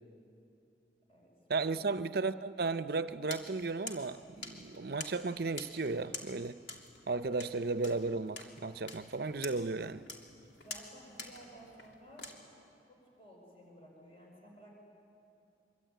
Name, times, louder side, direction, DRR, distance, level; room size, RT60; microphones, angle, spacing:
voice 1, 1.5-6.6 7.1-10.1, right 3 dB, 55° right, 0.6 m, -34 dB
sound 1, 3.3-12.4, left 3 dB, 75° left, 3.0 m, -48 dB
voice 2, 10.6-14.7, equal, 30° left, 5.4 m, -55 dB
25.0 x 24.0 x 9.2 m
head